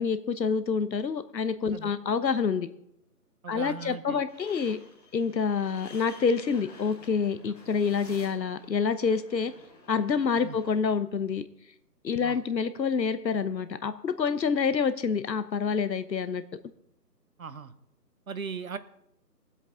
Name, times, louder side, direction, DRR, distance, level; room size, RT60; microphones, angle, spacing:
voice 1, 0.0-2.7 3.5-4.8 5.1-9.5 9.9-11.5 12.0-16.4, left 5 dB, 90° left, 12 dB, 1.0 m, -27 dB
voice 2, 3.4-4.2 10.4-10.6 12.2-12.4 17.4-17.7 18.3-18.8, right 6 dB, 55° right, 13 dB, 0.8 m, -38 dB
sound 1, 4.3-10.7, left 2 dB, 25° left, 2.0 m, -51 dB
18.5 x 8.0 x 3.7 m, 0.76 s
figure-of-eight pair, 175°, 50 cm